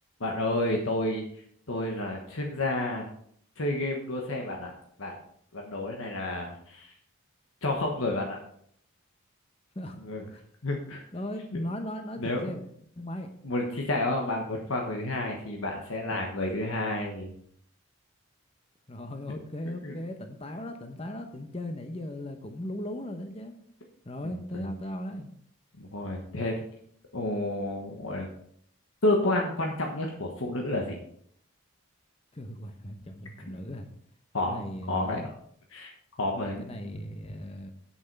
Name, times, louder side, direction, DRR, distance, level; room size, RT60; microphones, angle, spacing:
voice 1, 0.2-1.2 1.7-3.1 3.6-4.7 5.0-5.1 5.5-6.9 7.6-8.4 10.0-10.2 10.6-11.0 11.5-11.6 12.2-12.5 13.4-17.3 19.7-19.9 24.2-24.7 25.8-26.5 27.1-28.3 29.0-31.0 34.3-34.6 34.9-35.3 35.7-35.9 36.2-36.7, left 2 dB, 70° left, 0 dB, 1.3 m, -30 dB
voice 2, 11.1-12.7 13.0-13.3 16.1-16.2 18.9-23.6 24.0-25.3 32.3-33.9 34.4-35.2 36.6-37.7, left 1 dB, 25° left, 6 dB, 0.9 m, -37 dB
7.9 x 7.2 x 4.7 m, 0.66 s
head